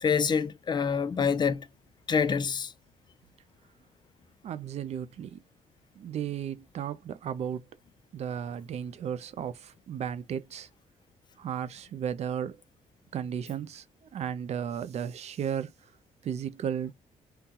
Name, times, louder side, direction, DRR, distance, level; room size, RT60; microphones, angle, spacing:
voice 1, 0.0-1.6 2.1-2.7, left 6 dB, 30° left, 0.5 m, -26 dB
voice 2, 4.4-5.4 6.0-7.6 8.1-10.7 11.4-12.6 13.1-13.8 14.1-15.7 16.2-16.9, right 8 dB, 50° right, 0.5 m, -34 dB
3.8 x 2.2 x 2.7 m
cardioid pair, 125°, 14 cm